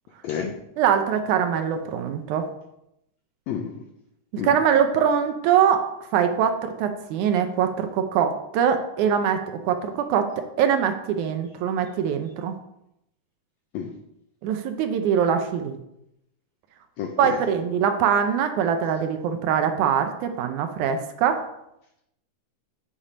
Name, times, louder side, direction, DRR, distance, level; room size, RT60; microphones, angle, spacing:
voice 1, 0.2-0.5 3.5-3.8 4.4-4.5 13.7-13.9 17.0-17.4, left 7 dB, 85° left, 4 dB, 1.5 m, -30 dB
voice 2, 0.8-2.5 4.3-5.8 6.1-12.6 14.4-15.8 17.2-21.5, right 8 dB, 80° right, 7 dB, 1.9 m, -23 dB
8.7 x 4.2 x 5.0 m, 0.82 s
omnidirectional pair, 3.8 m